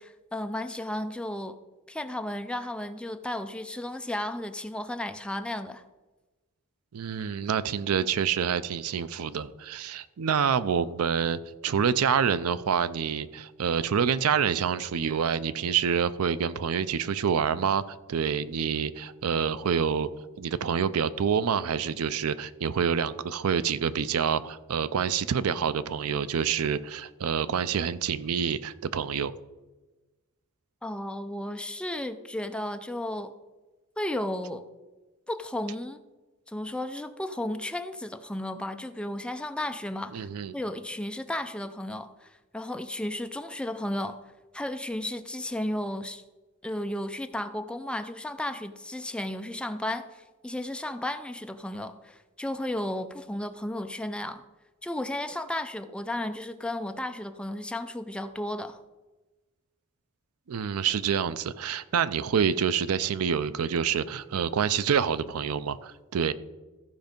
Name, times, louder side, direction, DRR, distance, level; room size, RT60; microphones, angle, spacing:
voice 1, 0.0-1.6 1.9-5.8 30.8-33.3 34.0-34.6 35.3-36.0 36.5-44.2 44.5-46.2 46.6-54.4 54.8-58.8, left 1 dB, 5° left, 0.4 m, -34 dB
voice 2, 6.9-20.1 20.4-29.3 40.1-40.6 60.5-66.3, right 7 dB, 80° right, 0.5 m, -27 dB
14.5 x 5.2 x 5.2 m
head